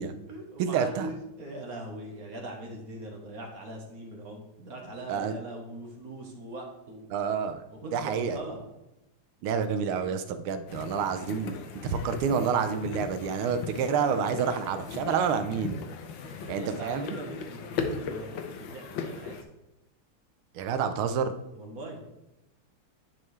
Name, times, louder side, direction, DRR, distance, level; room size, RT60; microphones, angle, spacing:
voice 1, 0.0-7.1 7.7-8.6 16.4-19.4 21.5-22.0, right 1 dB, 50° right, 1 dB, 1.3 m, -41 dB
voice 2, 0.6-1.1 5.1-5.3 7.1-7.6 7.9-8.4 9.4-11.6 11.8-15.8 16.5-17.2 20.5-21.3, right 6 dB, 80° right, 9 dB, 1.5 m, -28 dB
sound 1, 10.7-19.4, left 5 dB, 70° left, 1.3 m, -38 dB
9.9 x 4.3 x 3.2 m, 0.92 s
omnidirectional pair, 2.4 m